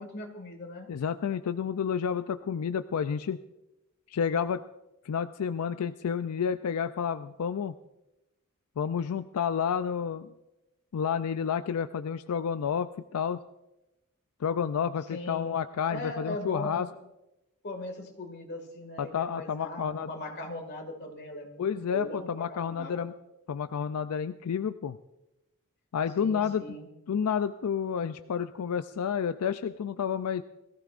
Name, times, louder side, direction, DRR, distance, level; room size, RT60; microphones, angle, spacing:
voice 1, 0.0-0.9 15.1-15.6 15.9-16.9 17.6-23.1 26.2-26.9, left 1 dB, 50° left, 4 dB, 2.1 m, -39 dB
voice 2, 0.9-3.4 4.1-4.6 5.0-7.7 8.8-10.3 10.9-13.4 14.4-16.9 19.0-20.1 21.6-23.1 23.5-25.0 25.9-26.6 27.1-30.4, left 7 dB, 85° left, 11 dB, 0.4 m, -30 dB
20.5 x 14.5 x 2.5 m, 0.94 s
head